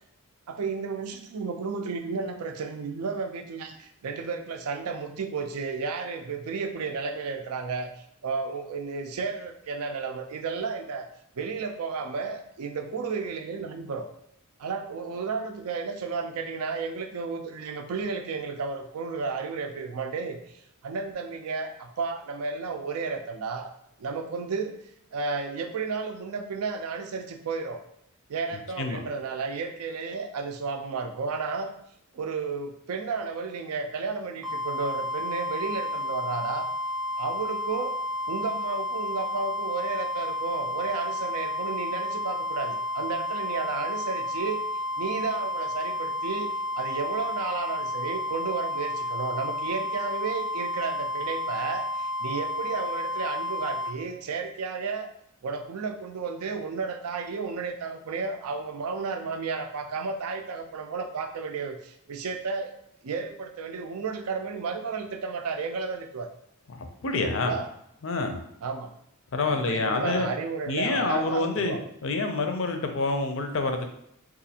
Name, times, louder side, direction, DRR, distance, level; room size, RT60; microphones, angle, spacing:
voice 1, 0.5-11.1 11.4-14.1 14.6-23.7 24.0-24.8 25.1-27.8 28.3-31.7 32.1-36.7 37.2-38.0 38.3-44.6 45.0-46.5 46.8-55.1 55.4-62.7 63.0-66.3 67.1-67.7 68.6-68.9 69.5-71.9, right 4 dB, 85° right, 6 dB, 0.4 m, -33 dB
sound 1, 34.4-53.9, left 1 dB, ahead, 0.6 m, -31 dB
voice 2, 66.7-67.5 68.0-68.4 69.3-70.3 70.7-71.8 72.0-73.9, left 3 dB, 60° left, 5 dB, 0.5 m, -27 dB
4.0 x 2.5 x 2.8 m, 0.74 s
head